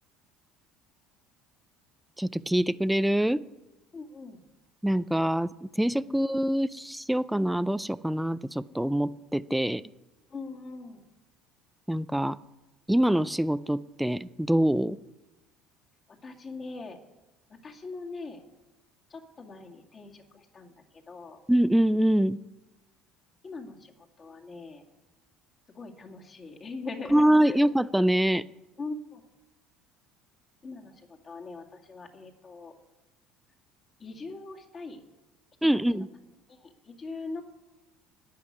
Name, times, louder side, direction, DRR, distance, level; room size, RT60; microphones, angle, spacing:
voice 1, 2.2-3.4 4.8-9.8 11.9-12.4 12.9-15.0 21.5-22.4 27.1-28.4 35.6-36.1, right 1 dB, 5° right, 0.4 m, -25 dB
voice 2, 3.9-4.4 6.1-6.2 10.3-11.0 16.1-17.0 17.5-18.4 19.1-20.7 21.1-21.4 23.4-24.8 25.7-27.6 28.8-29.2 30.6-30.9 31.2-32.7 34.0-35.0 35.9-36.0 36.5-36.6 36.8-37.4, left 3 dB, 30° left, 2.2 m, -41 dB
11.5 x 9.0 x 9.7 m
supercardioid pair, 115°, 0 cm